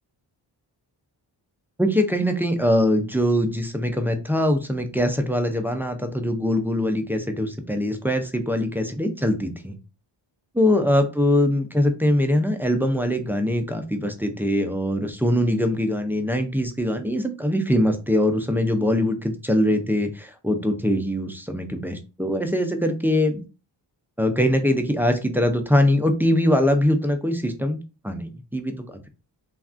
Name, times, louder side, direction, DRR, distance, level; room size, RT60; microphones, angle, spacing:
voice 1, 1.8-9.7 10.5-23.4 24.2-27.8 28.0-29.1, left 1 dB, 5° right, 6 dB, 0.4 m, -22 dB
3.3 x 2.3 x 2.4 m, 0.31 s
wide cardioid pair, 90°, 44 cm